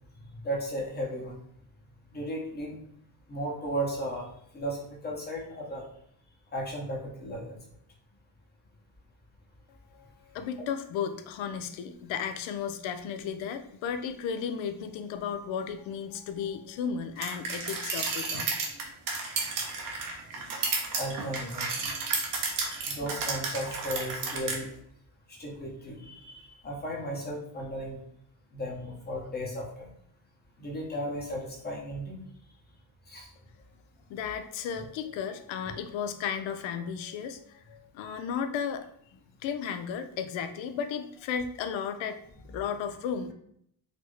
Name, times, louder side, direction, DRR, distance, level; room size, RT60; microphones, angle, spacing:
voice 1, 0.4-1.4 2.1-2.8 3.3-4.3 4.5-5.8 6.5-7.6 20.3-20.4 21.0-21.9 22.9-24.7 25.3-28.0 28.5-29.9 30.6-32.2 33.1-33.3, equal, 20° left, -3 dB, 0.8 m, -35 dB
voice 2, 10.3-18.5 34.1-38.9 39.4-42.2 42.5-43.3, left 7 dB, 75° left, 9 dB, 0.5 m, -34 dB
sound 1, 17.2-24.6, right 4 dB, 45° right, 0.7 m, -32 dB
4.2 x 2.0 x 3.1 m, 0.68 s
cardioid pair, 150°, 47 cm